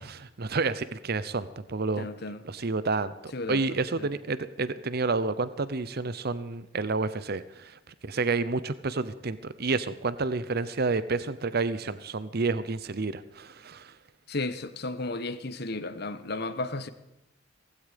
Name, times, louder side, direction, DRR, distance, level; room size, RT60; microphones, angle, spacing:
voice 1, 0.0-2.1 2.4-13.9, right 3 dB, 55° right, 0.8 m, -30 dB
voice 2, 2.0-2.4 3.3-4.1 14.3-16.9, left 2 dB, 55° left, 1.3 m, -34 dB
17.0 x 16.0 x 5.2 m
head